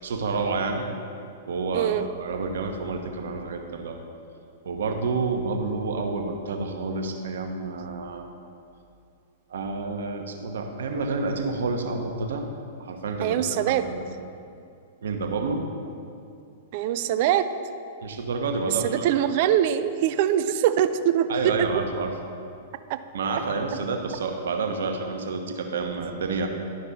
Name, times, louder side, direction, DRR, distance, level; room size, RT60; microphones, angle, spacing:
voice 1, 0.0-0.9 1.5-1.9 2.2-4.0 4.6-8.3 9.5-12.4 12.8-13.4 13.7-14.0 15.0-15.6 18.0-19.0 21.3-22.1 23.1-26.5, right 4 dB, 70° right, 4 dB, 1.0 m, -29 dB
voice 2, 1.7-2.1 13.2-13.8 16.7-17.5 18.8-21.7 22.9-23.0, right 10 dB, 50° right, 11 dB, 0.4 m, -23 dB
11.5 x 5.3 x 4.1 m, 2.5 s
hypercardioid pair, 110°, 0 cm